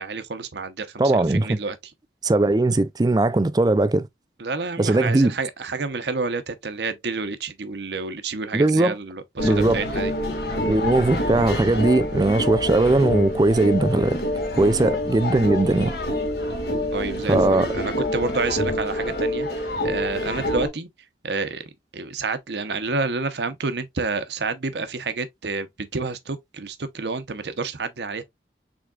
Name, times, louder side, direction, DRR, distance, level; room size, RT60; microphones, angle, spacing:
voice 1, 0.0-1.8 4.4-10.1 14.6-14.8 16.9-19.5 19.8-20.9 21.2-21.6 21.9-28.2, right 3 dB, 75° right, 0.8 m, -29 dB
voice 2, 1.0-1.6 2.2-4.1 4.8-5.3 8.5-9.0 9.4-9.8 10.7-14.2 14.5-15.9 17.3-17.7, right 2 dB, 20° right, 0.4 m, -19 dB
sound 1, 9.4-20.7, left 1 dB, 65° left, 1.6 m, -27 dB
6.2 x 3.5 x 2.3 m
head